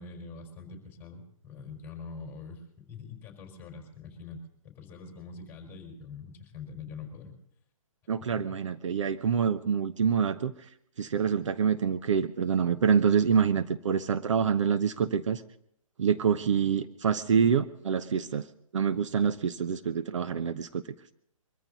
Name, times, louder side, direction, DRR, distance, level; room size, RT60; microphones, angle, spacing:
voice 1, 0.0-4.4 4.6-7.3 8.2-8.5, left 5 dB, 10° left, 2 dB, 4.6 m, -44 dB
voice 2, 8.1-10.5 11.0-15.4 16.0-18.4 18.7-20.9, right 7 dB, 60° right, 11 dB, 0.9 m, -26 dB
23.5 x 14.5 x 4.1 m, 0.71 s
figure-of-eight pair, 135°, 18 cm